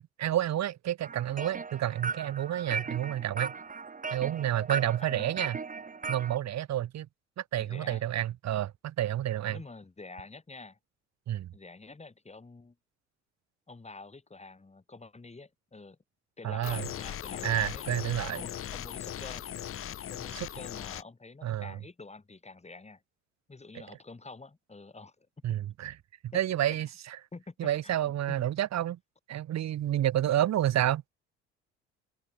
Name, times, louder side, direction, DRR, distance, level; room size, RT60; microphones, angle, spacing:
voice 1, 0.0-3.5 4.1-5.6 6.1-7.1 7.4-9.6 11.3-11.5 16.4-16.8 17.4-18.4 20.3-20.5 21.4-21.7 23.7-23.8 25.4-25.9 26.3-26.9 27.6-29.0 29.3-31.0, right 12 dB, 50° right, 3.0 m, -29 dB
sound 1, 1.0-6.4, right 5 dB, 20° right, 2.1 m, -37 dB
voice 2, 5.0-5.4 7.6-8.0 9.5-10.8 11.5-12.7 13.7-16.0 16.4-17.8 18.2-19.5 20.1-23.0 23.5-25.3 26.7-26.8 27.3-28.4 30.8-30.9, left 3 dB, 20° left, 6.2 m, -47 dB
sound 2, 16.6-21.0, left 10 dB, 40° left, 1.1 m, -39 dB
figure-of-eight pair, 50°, 35 cm